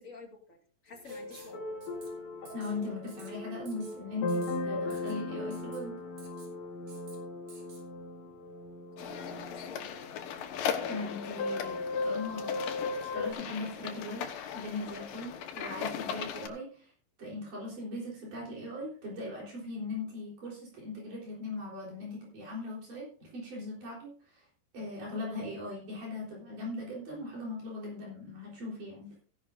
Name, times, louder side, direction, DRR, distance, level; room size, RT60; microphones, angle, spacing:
voice 1, 0.0-1.6 8.7-10.2, left 3 dB, 30° left, 1 dB, 1.8 m, -51 dB
Writing, 1.0-1.6 1.8-2.1 2.4-2.7 3.1-3.3 3.7-4.0 4.3-4.6 4.9-5.2 5.5-5.8 6.2-6.5 6.9-7.2 7.5-7.8, right 4 dB, 90° right, 5.2 m, -54 dB
sound 1, 1.1-13.3, left 2 dB, 55° left, 3.3 m, -37 dB
voice 2, 2.5-6.0 10.6-12.8 13.0-14.3 14.5-16.9 17.2-24.4 24.7-29.1, left 2 dB, 70° right, -4 dB, 5.4 m, -39 dB
sound 2, 9.0-16.5, left 8 dB, 90° left, 2.9 m, -38 dB
16.5 x 11.0 x 2.6 m, 0.42 s
omnidirectional pair, 3.9 m